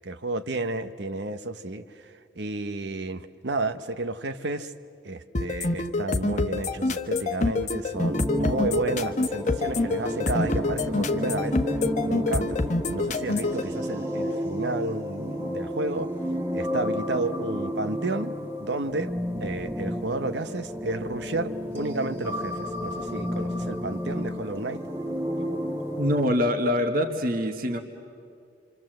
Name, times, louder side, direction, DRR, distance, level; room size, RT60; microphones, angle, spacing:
voice 1, 0.0-4.7 5.0-12.6 12.9-16.1 16.5-19.1 19.4-24.8, right 2 dB, 70° right, 10 dB, 0.9 m, -32 dB
sound 1, 5.3-13.6, left 2 dB, 40° left, 1.1 m, -26 dB
sound 2, 7.9-26.3, equal, 15° right, 1.7 m, -32 dB
voice 2, 26.0-27.8, left 1 dB, 55° right, 5 dB, 1.5 m, -24 dB
27.0 x 26.5 x 7.7 m, 2.3 s
head